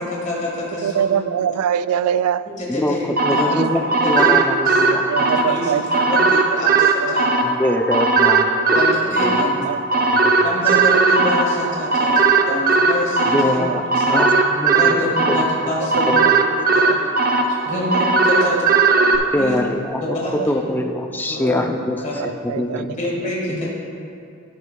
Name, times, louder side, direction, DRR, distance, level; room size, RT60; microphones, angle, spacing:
voice 1, 0.0-1.2 2.6-3.0 3.3-3.7 4.0-4.3 4.6-4.8 5.5-7.6 8.7-9.7 10.4-13.6 14.0-14.2 14.7-16.3 16.7-17.0 17.5-18.7 19.4-19.7 20.2-20.5 21.3-21.7 22.0-22.2 23.0-23.7, left 1 dB, 35° left, -5 dB, 1.6 m, -27 dB
voice 2, 0.8-2.4 3.5-3.7 5.1-7.2 9.4-10.1 10.7-10.8 12.0-12.1 12.5-12.6 13.7-13.8 14.3-14.4 14.9-15.0 16.1-16.3 16.8-17.0 17.6-18.0 18.4-19.2 20.1-20.5 22.2-22.9, right 9 dB, 85° right, 16 dB, 0.3 m, -25 dB
voice 3, 3.2-5.4 7.6-8.8 9.2-9.7 10.1-10.5 13.3-13.8 14.1-15.4 16.1-16.4 19.3-20.2 20.5-22.3 22.6-23.0, left 1 dB, 10° left, 3 dB, 0.4 m, -24 dB
sound 1, 3.2-19.2, right 3 dB, 40° right, 0.6 m, -18 dB
11.5 x 11.0 x 2.3 m, 2.4 s
head